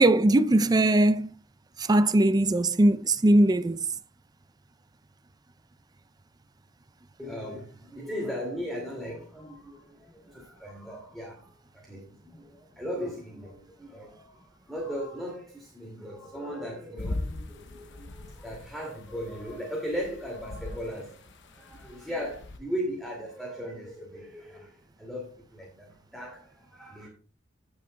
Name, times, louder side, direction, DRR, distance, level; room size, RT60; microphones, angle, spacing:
voice 1, 0.0-1.3 1.8-3.9, right 1 dB, 20° right, 0.4 m, -20 dB
voice 2, 7.2-27.1, equal, ahead, 2.2 m, -38 dB
sound 1, 17.0-22.6, left 2 dB, 60° left, 0.8 m, -40 dB
16.0 x 6.4 x 2.2 m
head